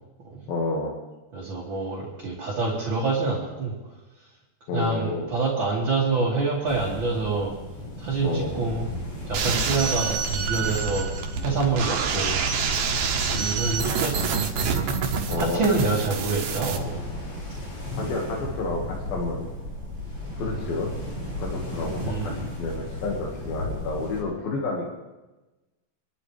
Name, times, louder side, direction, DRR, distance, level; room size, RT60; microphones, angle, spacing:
voice 1, 0.5-0.9 4.7-5.3 8.2-8.5 15.3-15.6 18.0-19.4 20.4-20.9 21.4-22.3 22.6-24.9, left 3 dB, 85° left, -1 dB, 3.6 m, -30 dB
voice 2, 1.3-3.7 4.7-7.5 8.0-8.9 9.3-11.1 11.4-12.4 13.3-14.3 15.3-17.0 20.4-20.7 22.0-22.5, right 3 dB, 35° right, -4 dB, 2.7 m, -26 dB
sound 1, 6.7-24.2, left 1 dB, 55° left, 6.2 m, -34 dB
sound 2, 9.3-16.8, right 6 dB, 75° right, 3.0 m, -27 dB
25.5 x 12.5 x 3.3 m, 1.1 s
omnidirectional pair, 4.1 m